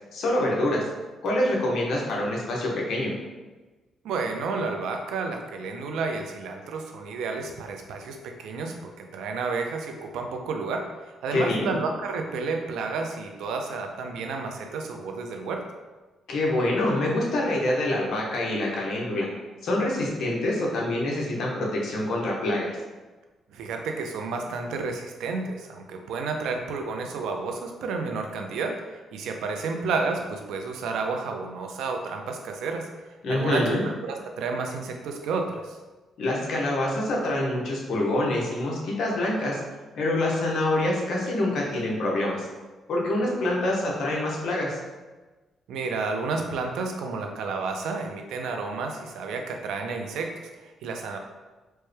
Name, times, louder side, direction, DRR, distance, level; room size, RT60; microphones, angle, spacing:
voice 1, 0.1-0.8 1.2-3.1 11.3-11.8 16.3-19.3 19.6-22.8 33.2-33.8 36.2-39.6 39.9-42.5 42.9-44.8, left 1 dB, 70° left, -3 dB, 0.9 m, -26 dB
voice 2, 4.0-10.8 11.2-15.6 23.5-32.9 33.3-35.8 45.7-51.2, right 4 dB, 90° right, 3 dB, 0.4 m, -31 dB
4.5 x 2.2 x 3.2 m, 1.2 s
cardioid pair, 110°, 0 cm